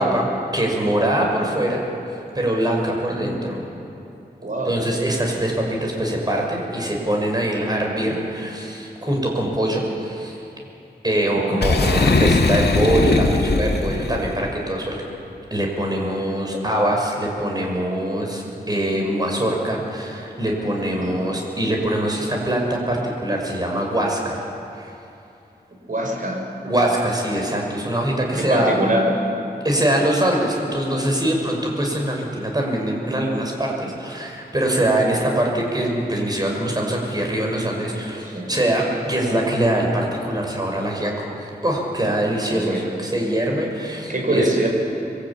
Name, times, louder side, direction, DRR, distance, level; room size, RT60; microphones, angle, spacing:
voice 1, 0.0-1.8 2.3-3.6 4.6-10.4 11.0-15.1 15.5-24.4 24.8-24.9 26.6-28.8 29.6-41.3 41.6-44.5, right 1 dB, 25° right, 0 dB, 6.0 m, -23 dB
voice 2, 4.4-4.7 11.3-11.7 21.0-21.3 25.9-26.4 28.3-29.1 38.3-38.5 42.5-42.9 44.1-44.7, right 1 dB, 55° right, 0 dB, 5.9 m, -24 dB
Boom, 11.6-14.3, left 3 dB, 85° left, 2.0 m, -19 dB
26.0 x 22.5 x 8.8 m, 2.7 s
wide cardioid pair, 105°, 17 cm